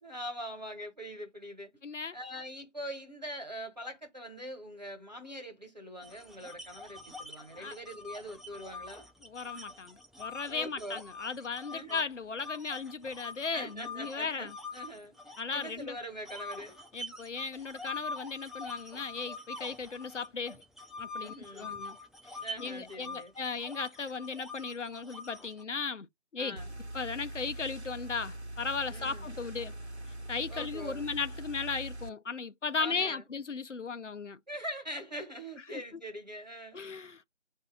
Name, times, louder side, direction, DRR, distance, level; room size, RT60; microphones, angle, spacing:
voice 1, 0.0-1.7 2.1-9.1 10.5-11.0 11.7-12.1 13.5-16.8 21.2-21.7 22.3-23.3 26.4-26.7 28.9-29.3 30.5-31.0 32.8-33.2 34.5-36.8, equal, 35° right, 1.3 m, -43 dB
voice 2, 1.8-2.2 7.6-7.7 9.2-14.5 15.4-16.0 16.9-20.6 21.0-22.0 22.2-26.1 26.3-26.6 26.9-29.7 30.3-34.4 35.7-35.8 36.7-37.3, left 5 dB, 75° left, 0.6 m, -36 dB
sound 1, 6.0-12.0 12.4-15.8 16.2-25.6, left 3 dB, ahead, 0.5 m, -44 dB
sound 2, 26.6-32.1, right 1 dB, 60° right, 1.0 m, -42 dB
4.3 x 2.7 x 3.7 m
figure-of-eight pair, 180°, 37 cm